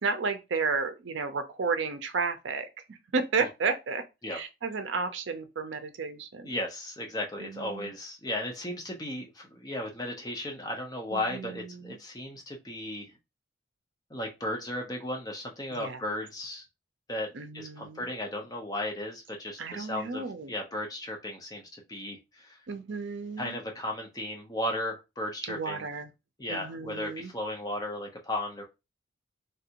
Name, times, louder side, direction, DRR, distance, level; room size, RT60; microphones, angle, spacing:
voice 1, 0.0-4.0 4.3-6.5 7.4-7.9 11.1-12.0 15.7-16.0 17.3-18.1 19.6-20.5 22.7-23.6 25.5-26.1 26.5-27.3, right 4 dB, 70° right, 0.5 m, -32 dB
voice 2, 6.4-13.1 14.1-16.6 17.1-17.3 17.5-22.6 23.4-25.9 26.4-28.6, left 1 dB, 20° left, 0.7 m, -35 dB
3.3 x 2.5 x 2.9 m
head